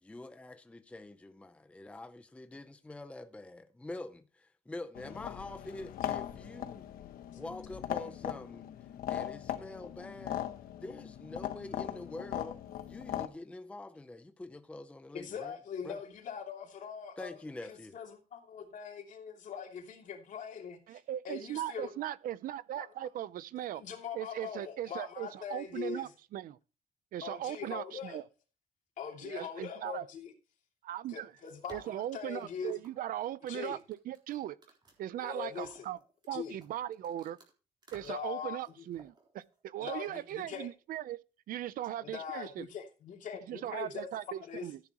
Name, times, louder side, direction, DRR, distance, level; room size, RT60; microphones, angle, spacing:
voice 1, 0.0-6.9 7.3-8.7 9.1-10.4 10.8-12.6 12.9-15.6 15.8-16.0 17.2-18.0, left 2 dB, 10° left, 0.6 m, -45 dB
sound 1, 4.9-13.3, left 11 dB, 80° left, 1.1 m, -39 dB
voice 2, 15.1-17.4 17.6-21.0 21.2-21.9 22.8-22.9 23.8-26.1 27.2-28.2 29.0-30.3 31.1-31.8 32.1-32.7 33.5-33.8 35.2-35.8 36.3-36.6 38.0-38.6 39.8-40.7 42.0-44.1 44.4-44.7, left 7 dB, 60° left, 2.8 m, -42 dB
voice 3, 20.9-23.8 24.1-26.6 27.1-28.2 29.2-30.0 30.9-31.3 31.7-34.6 35.0-36.0 36.3-37.4 37.9-41.2 41.5-42.7 43.5-44.8, right 12 dB, 75° right, 0.6 m, -39 dB
sound 2, 31.3-37.5 37.8-38.3 38.6-39.6, right 3 dB, 30° right, 3.8 m, -59 dB
14.0 x 10.0 x 3.0 m
cardioid pair, 140°, 15 cm